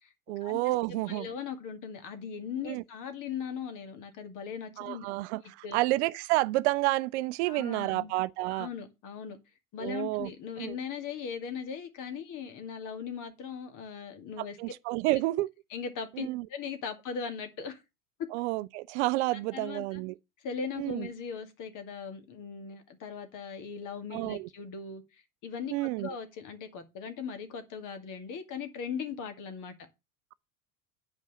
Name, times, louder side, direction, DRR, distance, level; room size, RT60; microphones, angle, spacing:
voice 1, 0.3-1.3 2.6-2.8 4.8-8.7 9.8-10.3 10.6-10.8 14.4-15.5 16.2-16.5 18.3-20.1 20.8-21.1 24.1-24.5 25.7-26.1, right 19 dB, 50° right, 0.5 m, -30 dB
voice 2, 0.9-5.1 5.6-5.8 7.5-8.1 8.5-9.4 9.7-14.6 15.7-17.8 19.5-20.0 20.4-29.7, left 6 dB, 45° left, 2.4 m, -39 dB
9.3 x 5.4 x 6.6 m
figure-of-eight pair, 80°, 44 cm